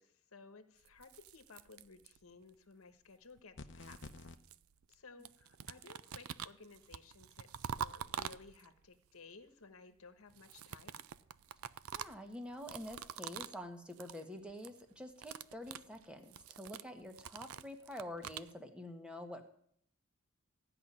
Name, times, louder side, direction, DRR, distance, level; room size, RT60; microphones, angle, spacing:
voice 1, 0.0-4.3 4.9-11.0, left 4 dB, 80° left, 10 dB, 1.2 m, -57 dB
sound 1, 0.8-2.4 3.4-5.0 5.2-8.9 10.3-13.6 13.9-14.2 14.5-14.8 15.1-18.5, right 8 dB, 80° right, 0.5 m, -46 dB
sound 2, 3.6-4.4, left 3 dB, 60° left, 0.8 m, -49 dB
voice 2, 11.9-19.5, left 1 dB, 5° right, 5 dB, 1.4 m, -47 dB
15.0 x 5.9 x 9.9 m, 0.67 s
head